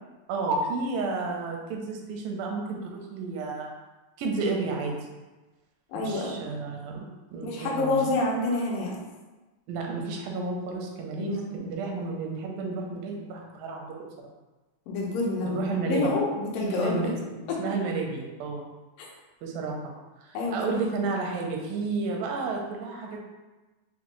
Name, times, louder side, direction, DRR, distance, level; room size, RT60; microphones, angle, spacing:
voice 1, 0.3-3.7 4.2-5.0 6.0-7.1 7.3-8.0 9.7-14.0 15.4-16.2 16.6-18.7 19.4-19.9 20.2-23.2, right 3 dB, 85° right, 1 dB, 2.4 m, -31 dB
voice 2, 5.9-6.4 7.4-9.0 11.2-11.7 14.9-15.6 15.9-17.1 17.5-17.6 19.0-19.1 20.3-20.8, left 2 dB, 85° left, -2 dB, 2.4 m, -28 dB
6.0 x 2.1 x 3.1 m, 1.2 s
omnidirectional pair, 3.9 m